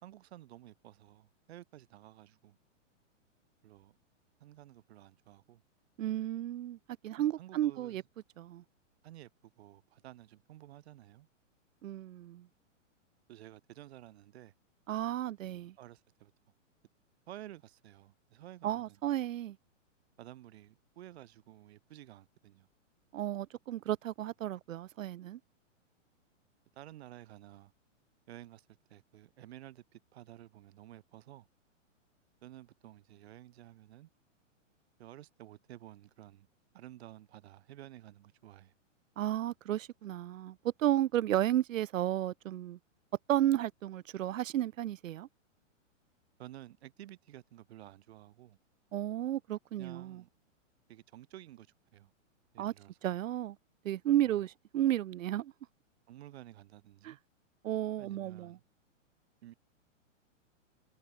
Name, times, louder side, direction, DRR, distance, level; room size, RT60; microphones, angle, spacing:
voice 1, 0.0-2.6 3.6-4.0 4.4-5.6 7.2-8.0 9.0-11.3 13.3-14.5 15.8-16.3 17.3-19.0 20.2-22.7 26.7-27.7 28.3-31.5 32.4-34.1 35.0-36.5 36.7-38.7 46.4-48.6 49.8-50.3 50.9-51.7 51.9-52.1 52.5-53.0 54.2-54.4 56.1-57.2 58.0-58.6 59.4-59.5, right 13 dB, 55° right, 5.0 m, -52 dB
voice 2, 6.0-6.8 7.0-8.0 8.4-8.6 11.8-12.5 14.9-15.7 18.6-19.6 23.1-25.4 39.2-42.8 43.3-45.3 48.9-50.2 52.6-52.7 53.0-53.6 53.8-55.5 57.0-57.1 57.6-58.6, right 12 dB, 80° right, 0.8 m, -33 dB
hypercardioid pair, 155°, 38 cm